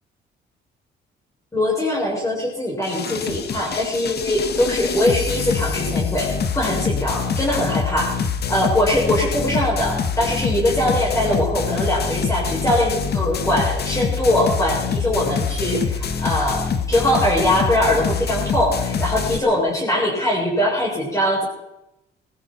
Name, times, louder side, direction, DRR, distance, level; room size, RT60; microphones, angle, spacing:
voice 1, 1.5-6.3 6.5-21.4, left 1 dB, 15° left, -4 dB, 7.1 m, -21 dB
sound 1, 2.8-19.4, left 6 dB, 55° left, 1.7 m, -25 dB
19.0 x 15.0 x 4.6 m, 0.87 s
cardioid pair, 90°, 20 cm